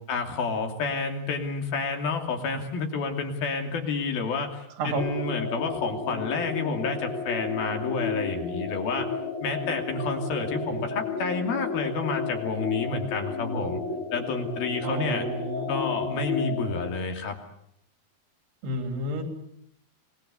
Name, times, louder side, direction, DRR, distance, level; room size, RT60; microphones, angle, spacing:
voice 1, 0.0-9.1 9.4-13.8 14.1-15.3 15.7-17.4, left 4 dB, 70° left, 4 dB, 4.5 m, -30 dB
sound 1, 5.0-16.9, left 4 dB, 50° left, 5.4 m, -32 dB
voice 2, 14.8-16.2 18.6-19.2, right 1 dB, 85° right, 5 dB, 5.9 m, -31 dB
26.0 x 19.5 x 8.4 m, 0.72 s
omnidirectional pair, 4.6 m